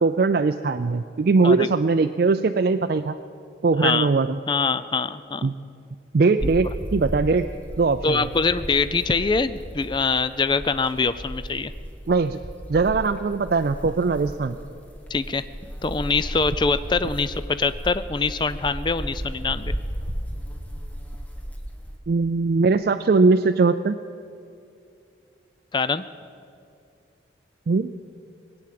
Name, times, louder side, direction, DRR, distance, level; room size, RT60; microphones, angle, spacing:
voice 1, 0.0-3.2 3.6-4.4 5.4-5.5 6.1-7.5 7.8-8.3 12.1-12.4 12.7-14.6 22.1-24.0 27.7-27.9, right 4 dB, 55° right, 7 dB, 0.4 m, -20 dB
voice 2, 3.8-4.1 4.5-5.4 6.4-6.5 8.0-11.7 15.1-15.4 15.8-19.7 25.7-26.0, left 4 dB, 25° left, 14 dB, 0.4 m, -24 dB
sound 1, 6.4-22.0, equal, 10° left, 1.2 m, -34 dB
20.5 x 8.8 x 7.6 m, 2.4 s
head